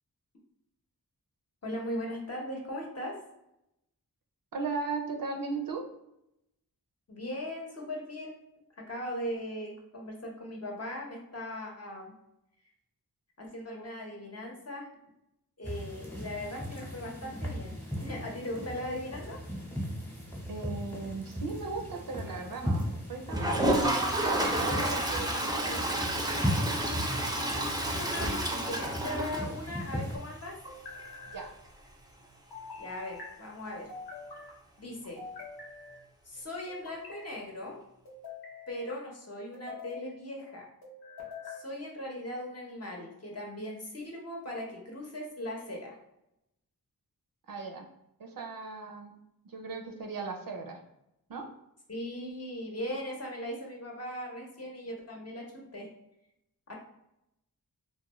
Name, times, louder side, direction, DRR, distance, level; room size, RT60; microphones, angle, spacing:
voice 1, 1.6-3.2 7.1-8.4 8.8-12.1 13.4-14.9 15.6-17.7 18.0-19.4 27.4-30.6 32.8-33.9 34.8-35.2 36.3-37.8 38.7-40.7 41.4-46.0 51.9-55.9 56.7-56.8, left 1 dB, 40° left, -1 dB, 0.8 m, -39 dB
voice 2, 4.5-5.9 20.5-24.2 24.6-26.0 31.3-31.5 47.5-47.9 48.2-49.1 49.4-50.8 51.3-51.5, right 4 dB, 60° right, 3 dB, 0.5 m, -37 dB
sound 1, 15.6-30.2, equal, 5° left, 0.9 m, -37 dB
Toilet flush, 23.3-30.0 30.3-30.4 30.6-30.7 31.0-31.1 33.6-33.7 35.0-35.1, right 1 dB, 10° right, 0.5 m, -30 dB
sound 2, 27.0-27.7 29.0-29.8 30.7-31.4 32.5-33.3 33.9-34.5 35.2-36.0 36.7-37.3 38.0-39.0 39.5-40.1 40.8-41.6, left 4 dB, 85° left, 0.7 m, -45 dB
2.4 x 2.2 x 2.9 m, 0.84 s
cardioid pair, 40°, 38 cm